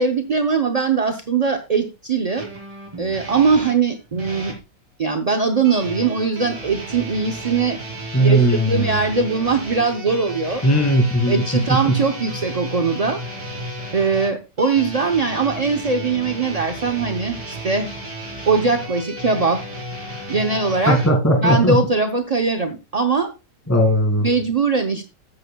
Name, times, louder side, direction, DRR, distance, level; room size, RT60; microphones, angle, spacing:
voice 1, 0.0-2.5 3.0-4.5 5.0-7.8 8.2-10.6 11.3-13.2 13.5-13.7 13.9-17.9 18.5-19.6 20.3-21.0 21.4-23.3 24.2-25.0, right 4 dB, 45° right, 4 dB, 0.5 m, -21 dB
sound 1, 2.4-4.6 5.6-21.1, right 1 dB, 15° right, 3.2 m, -33 dB
voice 2, 8.1-9.0 10.6-11.4 11.7-12.0 20.9-21.8 23.7-24.3, equal, 10° left, 2 dB, 2.3 m, -17 dB
13.5 x 8.8 x 2.3 m, 0.28 s
omnidirectional pair, 1.8 m